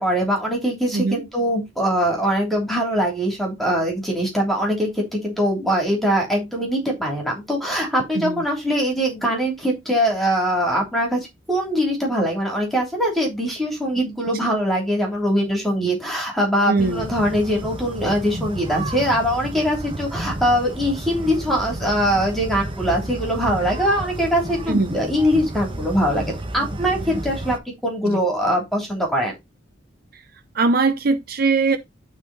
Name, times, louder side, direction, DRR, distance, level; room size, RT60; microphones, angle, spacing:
voice 1, 0.0-11.2 11.5-26.3 26.5-27.6 27.8-29.3, equal, ahead, 3.1 m, -22 dB
voice 2, 0.9-1.2 8.1-8.4 16.7-17.0 24.7-25.0 28.0-28.2 30.1-30.2 30.5-31.8, right 3 dB, 50° right, 0.7 m, -21 dB
sound 1, 16.8-27.6, right 1 dB, 25° right, 1.2 m, -31 dB
11.5 x 4.0 x 4.1 m
head